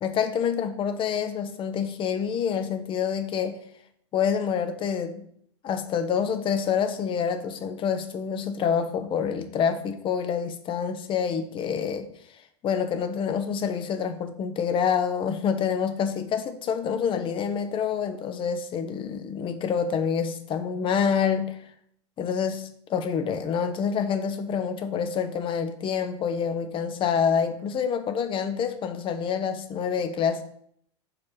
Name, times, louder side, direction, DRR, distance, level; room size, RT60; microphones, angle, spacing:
voice 1, 0.0-3.6 4.1-5.3 5.6-12.1 12.6-21.6 22.2-30.4, left 7 dB, 35° left, 9 dB, 0.8 m, -27 dB
5.1 x 4.7 x 5.9 m, 0.66 s
figure-of-eight pair, 85°, 16 cm